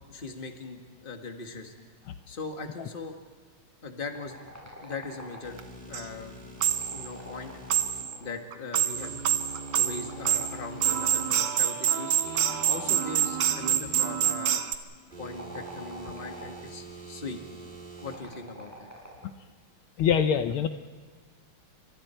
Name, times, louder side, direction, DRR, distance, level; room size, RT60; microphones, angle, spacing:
voice 1, 0.1-1.7 2.3-3.1 3.8-4.4 4.8-6.4 6.9-7.5 8.2-9.2 9.7-12.2 12.7-14.6 15.2-17.4 18.0-18.9, left 3 dB, 25° left, 4 dB, 1.7 m, -39 dB
sound 1, 4.1-5.8 6.6-8.4 9.4-11.2 12.3-13.6 15.1-16.7 18.0-19.3, equal, 5° right, 7.2 m, -46 dB
sound 2, 5.4-8.0 8.9-11.3 12.2-14.3 15.1-18.2, right 2 dB, 25° right, 2.3 m, -44 dB
sound 3, 5.6-5.7 5.9-6.0 6.6-7.1 7.7-8.2 8.5-14.8, right 10 dB, 85° right, 1.9 m, -26 dB
voice 2, 20.0-20.7, left 8 dB, 75° left, 8 dB, 1.7 m, -23 dB
29.5 x 25.5 x 4.5 m, 1.5 s
omnidirectional pair, 2.4 m